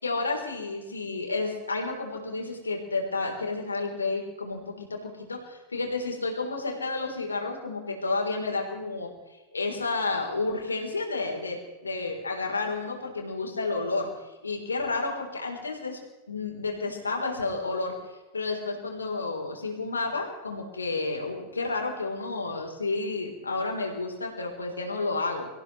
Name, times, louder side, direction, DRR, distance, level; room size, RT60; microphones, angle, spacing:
voice 1, 0.0-9.1 9.5-14.1 14.4-16.0 16.3-17.9 18.3-25.5, left 3 dB, 75° left, 2 dB, 3.8 m, -31 dB
25.5 x 15.5 x 3.2 m, 1.2 s
figure-of-eight pair, 90°, 0 cm